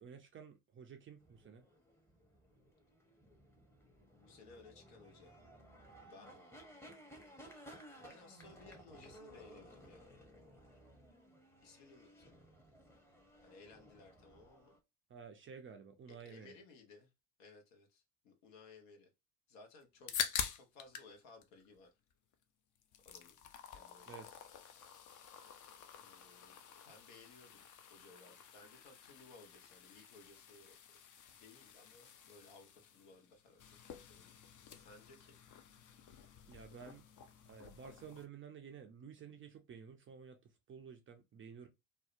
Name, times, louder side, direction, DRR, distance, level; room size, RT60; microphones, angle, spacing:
voice 1, 0.0-1.7 15.1-16.5 24.1-24.4 36.5-37.0 37.5-41.7, right 6 dB, 25° right, 0.4 m, -53 dB
sound 1, 1.2-14.8, equal, 5° left, 0.7 m, -58 dB
voice 2, 4.2-5.4 6.0-6.4 7.9-10.1 11.6-12.4 13.4-14.7 16.1-17.1 17.4-19.1 19.5-20.1 20.5-21.9 23.0-23.4 23.7-24.2 25.9-26.6 26.9-27.6 27.9-30.8 31.3-34.3 34.6-35.4, left 3 dB, 70° left, 1.0 m, -60 dB
sound 2, 19.8-21.1 21.4-22.4 22.7-38.3, left 8 dB, 40° left, 0.5 m, -47 dB
2.6 x 2.1 x 2.4 m
hypercardioid pair, 60°, 50 cm